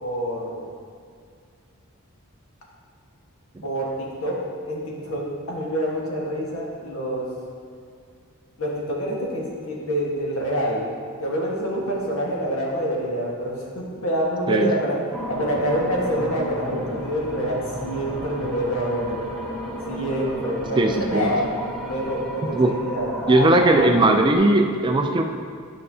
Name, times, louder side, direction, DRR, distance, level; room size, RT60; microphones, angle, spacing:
voice 1, 0.0-0.7 3.6-4.4 4.7-7.3 8.6-10.9 11.2-15.0 15.3-19.3 19.9-21.5 21.8-24.0, equal, 65° left, -3 dB, 1.4 m, -27 dB
sound 1, 15.1-24.4, left 1 dB, ahead, 0.7 m, -33 dB
voice 2, 20.8-21.3 22.5-22.7 23.3-25.2, right 2 dB, 20° right, 4 dB, 0.3 m, -18 dB
9.8 x 5.4 x 2.7 m, 2.2 s
head